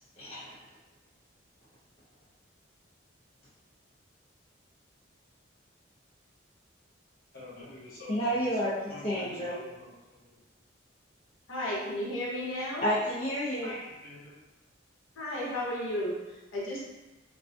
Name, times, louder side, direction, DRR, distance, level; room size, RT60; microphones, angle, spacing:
voice 1, 0.2-0.5 8.1-8.7 9.0-9.6 12.8-13.7, equal, 30° left, -9 dB, 0.4 m, -30 dB
voice 2, 7.3-8.6 8.9-10.3 13.6-14.3, left 2 dB, 50° left, -8 dB, 1.0 m, -46 dB
voice 3, 11.5-12.9 15.2-16.8, left 1 dB, 85° left, -5 dB, 0.6 m, -34 dB
2.4 x 2.1 x 2.5 m, 1.1 s
head